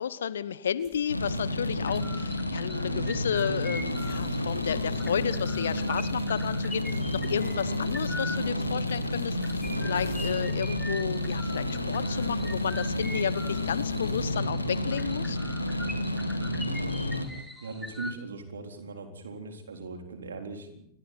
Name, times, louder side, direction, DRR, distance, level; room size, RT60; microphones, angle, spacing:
voice 1, 0.0-15.4, left 8 dB, 65° left, 18 dB, 1.1 m, -32 dB
sound 1, 0.8-14.3, left 3 dB, 40° left, 7.5 m, -53 dB
sound 2, 1.1-17.3, left 1 dB, 85° left, 2.2 m, -30 dB
sound 3, 1.8-18.1, left 1 dB, 5° left, 3.9 m, -43 dB
voice 2, 16.4-17.3 17.6-20.8, right 3 dB, 70° right, 4 dB, 4.0 m, -39 dB
29.5 x 22.0 x 4.4 m, 0.66 s
figure-of-eight pair, 90°, 0 cm